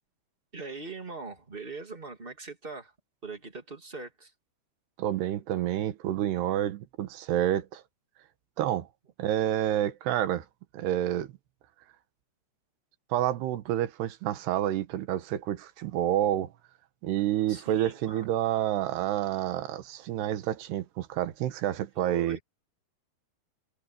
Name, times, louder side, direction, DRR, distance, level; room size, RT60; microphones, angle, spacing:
voice 1, 0.5-2.9 3.2-4.3 17.5-18.3 21.9-22.4, right 3 dB, 15° right, 2.4 m, -41 dB
voice 2, 5.0-7.8 8.6-8.9 9.2-10.5 10.7-11.3 13.1-16.5 17.0-22.4, right 12 dB, 85° right, 3.4 m, -29 dB
omnidirectional pair, 4.6 m